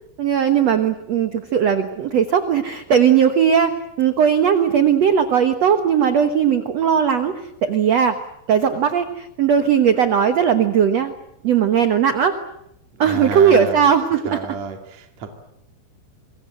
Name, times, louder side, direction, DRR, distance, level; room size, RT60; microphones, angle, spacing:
voice 1, 0.2-7.3 7.6-8.2 8.5-11.1 11.4-12.4 13.0-14.4, right 8 dB, 90° right, 9 dB, 1.4 m, -18 dB
voice 2, 12.9-13.8 14.2-15.3, right 5 dB, 45° right, 5 dB, 3.2 m, -31 dB
27.0 x 23.0 x 7.9 m, 0.79 s
omnidirectional pair, 5.0 m